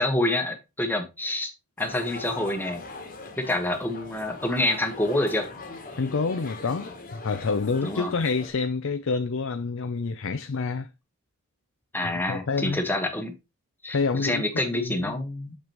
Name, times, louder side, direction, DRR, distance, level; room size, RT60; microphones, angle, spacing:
voice 1, 0.0-1.5 1.8-2.8 3.4-5.5 7.8-8.1 11.9-13.3 13.8-15.6, left 1 dB, 10° left, 1.2 m, -27 dB
sound 1, 1.8-8.5, left 3 dB, 40° left, 1.4 m, -41 dB
voice 2, 6.0-10.9 12.0-12.8 13.9-15.2, left 4 dB, 60° left, 0.5 m, -28 dB
6.8 x 6.1 x 3.0 m
head